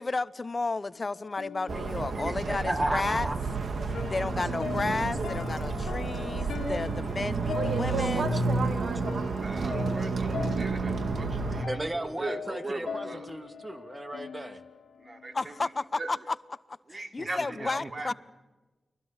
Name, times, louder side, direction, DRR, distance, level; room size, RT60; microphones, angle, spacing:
voice 1, 0.0-3.3 3.8-8.4 15.3-16.3 16.9-18.1, left 3 dB, 40° left, 0.8 m, -32 dB
sound 1, 0.9-15.8, left 6 dB, 80° left, 1.7 m, -42 dB
voice 2, 1.7-3.4 6.6-6.8 7.9-8.1 8.3-8.4 11.6-14.6 17.2-17.3 17.6-18.1, right 1 dB, 25° right, 2.7 m, -35 dB
sound 2, 1.7-11.6, right 3 dB, 70° right, 2.0 m, -30 dB
voice 3, 2.8-3.2 9.3-13.3 15.0-16.2 16.9-18.1, right 2 dB, 45° right, 2.9 m, -39 dB
30.0 x 22.0 x 7.1 m
cardioid pair, 45°, 0 cm